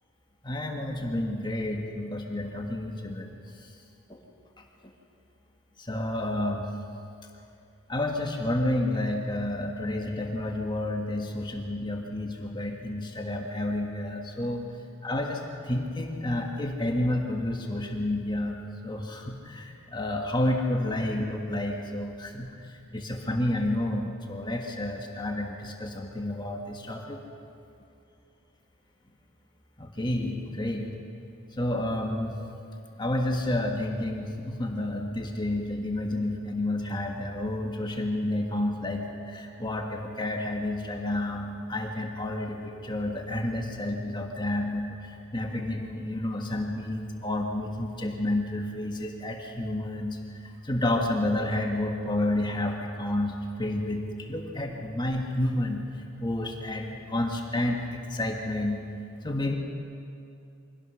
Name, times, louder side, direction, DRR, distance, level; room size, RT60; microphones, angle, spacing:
voice 1, 0.4-3.3 4.1-4.2 5.8-6.7 7.9-14.6 15.0-22.7 22.9-27.2 29.8-30.9 31.6-32.4 33.0-55.8 56.2-58.8 59.2-59.5, left 1 dB, 20° left, 2 dB, 1.6 m, -30 dB
24.5 x 17.0 x 6.4 m, 2.5 s
head